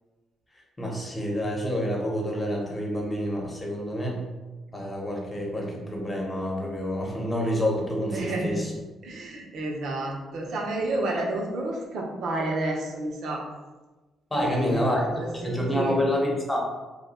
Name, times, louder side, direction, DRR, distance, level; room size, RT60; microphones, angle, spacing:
voice 1, 0.8-4.2 4.7-8.6 14.3-15.0 15.4-16.6, equal, 15° left, -2 dB, 1.0 m, -28 dB
voice 2, 8.1-8.7 9.0-13.4 14.3-16.0, right 2 dB, 70° right, -1 dB, 0.7 m, -30 dB
2.8 x 2.2 x 4.1 m, 1.2 s
cardioid pair, 90°, 0 cm